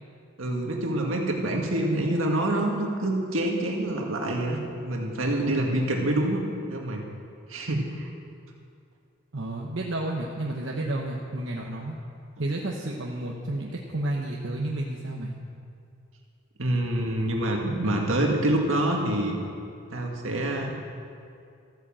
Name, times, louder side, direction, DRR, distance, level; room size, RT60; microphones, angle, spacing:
voice 1, 0.4-7.0 7.5-8.1 16.6-19.4 19.9-20.7, right 1 dB, 75° right, 0 dB, 2.0 m, -26 dB
voice 2, 9.3-12.0 12.4-15.4, right 1 dB, 60° right, -1 dB, 1.1 m, -31 dB
14.0 x 9.3 x 7.6 m, 2.4 s
head